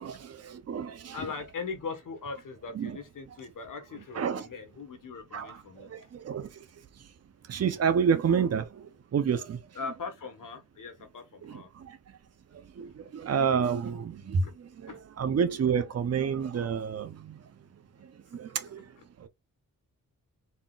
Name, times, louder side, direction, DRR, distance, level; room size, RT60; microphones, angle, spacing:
voice 1, 0.0-1.2 2.8-2.9 4.2-4.5 5.3-6.6 7.5-9.6 11.4-12.2 12.5-14.9 15.2-17.4 18.0-18.9 19.2-19.3, right 7 dB, 50° right, 0.7 m, -30 dB
voice 2, 1.1-6.1 7.5-7.7 9.7-11.7 14.4-14.5 14.9-15.0, left 4 dB, 70° left, 1.4 m, -40 dB
4.3 x 3.8 x 2.4 m
wide cardioid pair, 135°, 33 cm